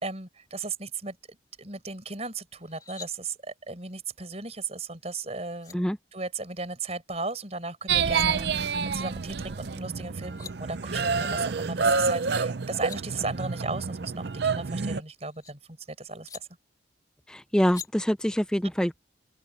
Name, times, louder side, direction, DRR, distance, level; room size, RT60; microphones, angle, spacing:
voice 1, 0.0-8.7 8.9-16.5, right 3 dB, 35° right, 5.0 m, -36 dB
sound 1, 2.6-3.1 5.1-5.2 5.6-5.8 7.8-8.3 9.9-10.0 10.2-10.5 12.5-13.0 14.5-15.5 16.3-16.4 17.7-17.9, left 6 dB, 20° left, 3.2 m, -44 dB
sound 2, 7.9-15.0, right 5 dB, 60° right, 0.6 m, -28 dB
voice 2, 17.3-19.0, equal, 5° left, 0.5 m, -25 dB
open air
head